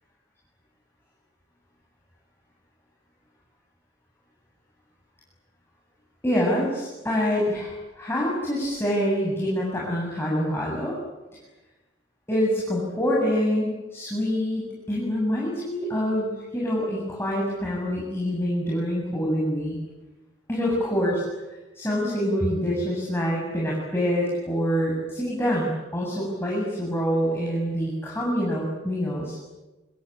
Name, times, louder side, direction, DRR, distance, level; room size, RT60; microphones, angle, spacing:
voice 1, 6.2-11.0 12.3-19.8 20.5-21.2 21.7-29.4, equal, 10° left, -3 dB, 7.5 m, -26 dB
27.0 x 25.5 x 8.8 m, 1.1 s
head